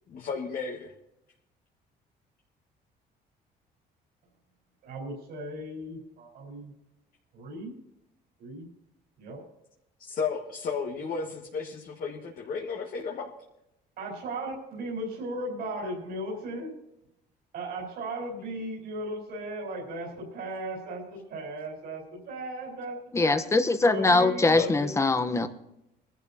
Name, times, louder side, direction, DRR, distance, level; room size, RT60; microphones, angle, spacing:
voice 1, 0.1-0.9 10.0-13.3 24.5-24.7, left 5 dB, 55° left, -1 dB, 1.8 m, -33 dB
voice 2, 4.8-6.7 7.3-7.7 8.4-8.7 9.2-9.4 14.0-16.7 17.5-23.4 23.8-24.9, right 1 dB, 70° right, -3 dB, 4.8 m, -36 dB
voice 3, 23.1-25.5, left 3 dB, 15° left, 9 dB, 1.0 m, -22 dB
22.5 x 12.0 x 2.9 m, 0.85 s
cardioid pair, 110°, 17 cm